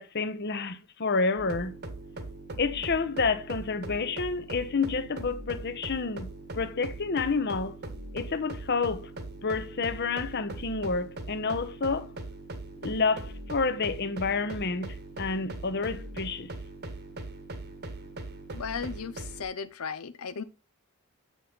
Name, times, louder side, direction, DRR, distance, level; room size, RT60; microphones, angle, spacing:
voice 1, 0.0-1.7 2.6-6.3 6.5-7.7 8.1-9.1 9.4-12.1 12.8-16.5, left 4 dB, 50° left, 0.9 m, -29 dB
sound 1, 1.4-19.4, right 2 dB, 50° right, 1.4 m, -40 dB
voice 2, 18.5-20.4, left 6 dB, 90° left, 0.6 m, -36 dB
8.0 x 6.3 x 3.9 m
head